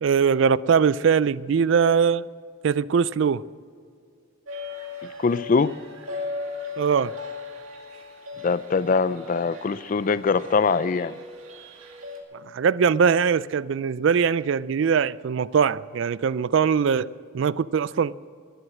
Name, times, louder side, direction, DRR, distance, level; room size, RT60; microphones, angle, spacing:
voice 1, 0.0-2.3 2.6-3.4 6.8-7.1 12.5-17.1 17.3-18.1, right 6 dB, 60° right, 0.3 m, -21 dB
sound 1, 4.5-12.2, left 3 dB, 80° right, 2.3 m, -38 dB
voice 2, 5.2-5.7 8.4-11.2, left 4 dB, 40° left, 0.3 m, -22 dB
20.0 x 7.9 x 7.5 m
head